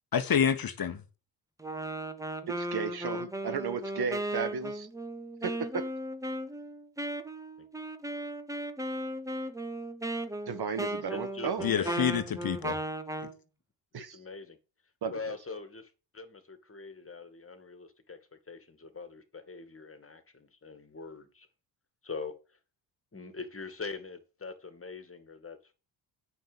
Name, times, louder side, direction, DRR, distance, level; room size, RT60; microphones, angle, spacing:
voice 1, 0.1-1.0 11.6-12.8, left 8 dB, 45° left, 1.5 m, -28 dB
Wind instrument woodwind instrument, 1.6-13.4, right 1 dB, 5° right, 1.4 m, -36 dB
voice 2, 2.6-4.9 5.4-5.5 10.5-11.7 11.9-12.1 13.9-14.2 15.0-15.3, right 6 dB, 50° right, 1.8 m, -34 dB
voice 3, 11.1-12.1 13.9-14.6 15.1-18.2 18.5-21.5 22.0-22.4 23.1-25.7, left 4 dB, 25° left, 2.3 m, -43 dB
9.0 x 5.7 x 7.0 m
supercardioid pair, 60°, 49 cm